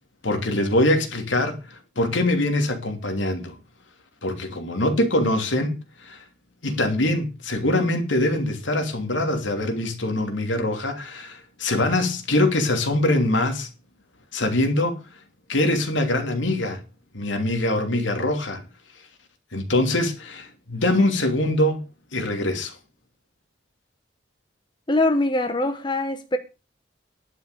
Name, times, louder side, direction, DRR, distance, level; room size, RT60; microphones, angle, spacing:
voice 1, 0.2-3.5 4.2-5.7 6.0-6.2 6.6-13.7 14.3-15.0 15.5-16.8 17.1-18.6 19.5-21.8 22.1-22.7, left 1 dB, 80° left, 2.9 m, -23 dB
voice 2, 24.9-26.4, left 2 dB, 25° left, 1.0 m, -22 dB
11.0 x 7.3 x 6.8 m
head